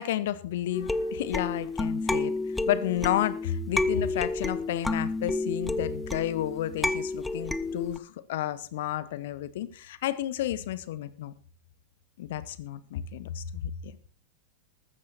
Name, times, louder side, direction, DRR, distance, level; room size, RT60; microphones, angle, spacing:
voice 1, 0.0-2.3 2.7-11.3 12.2-13.9, left 12 dB, 55° left, 17 dB, 1.1 m, -31 dB
sound 1, 0.7-8.0, left 2 dB, 5° left, 0.7 m, -30 dB
14.5 x 13.0 x 4.2 m, 0.39 s
figure-of-eight pair, 90°, 0 cm